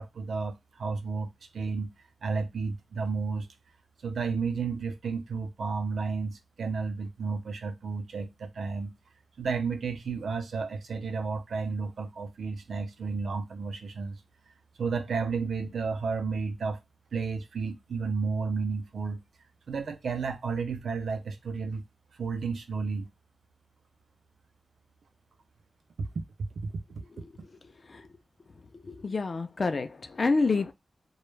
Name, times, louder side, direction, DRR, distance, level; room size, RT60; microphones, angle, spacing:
voice 1, 0.0-1.9 2.2-3.5 4.0-8.9 9.4-14.2 14.8-16.8 17.1-19.2 19.7-21.8 22.2-23.1 26.0-26.2 26.6-26.7, right 4 dB, 85° right, 0.5 m, -32 dB
voice 2, 28.8-30.7, left 3 dB, 50° left, 0.4 m, -28 dB
2.3 x 2.0 x 3.1 m
wide cardioid pair, 75°, 0 cm